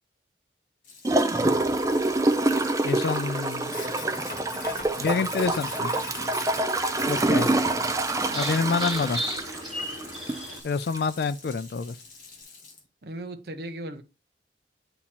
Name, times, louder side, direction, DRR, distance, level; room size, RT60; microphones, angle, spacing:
Sink (filling or washing), 0.8-12.8, left 3 dB, 45° left, 1.5 m, -43 dB
Gurgling / Toilet flush, 1.0-10.5 10.9-11.0, right 2 dB, 20° right, 0.4 m, -26 dB
voice 1, 2.8-3.7 5.0-5.9 7.1-7.5 8.3-9.2 10.6-12.0, left 4 dB, 60° left, 0.3 m, -27 dB
sound 1, 3.8-10.6, equal, ahead, 1.7 m, -38 dB
voice 2, 13.0-14.0, right 1 dB, 55° right, 0.7 m, -36 dB
8.6 x 2.9 x 4.2 m
head